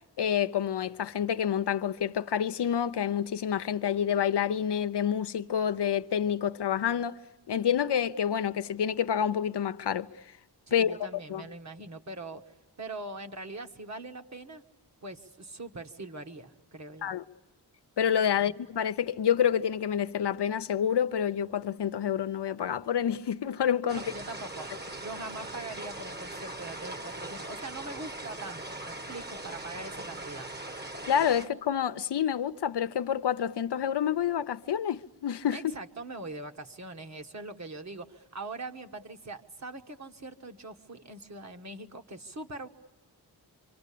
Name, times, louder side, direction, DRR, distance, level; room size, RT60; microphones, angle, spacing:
voice 1, 0.2-7.2 7.5-10.1 10.7-11.0 11.3-11.4 17.0-17.2 18.0-24.0 31.1-35.7, left 9 dB, 75° left, 0.9 m, -28 dB
voice 2, 10.7-14.6 15.0-17.1 18.4-18.5 24.1-30.5 35.5-42.7, right 2 dB, 40° right, 1.6 m, -42 dB
sound 1, 23.9-31.5, right 2 dB, 25° right, 1.3 m, -40 dB
26.0 x 26.0 x 8.5 m
wide cardioid pair, 135°, 41 cm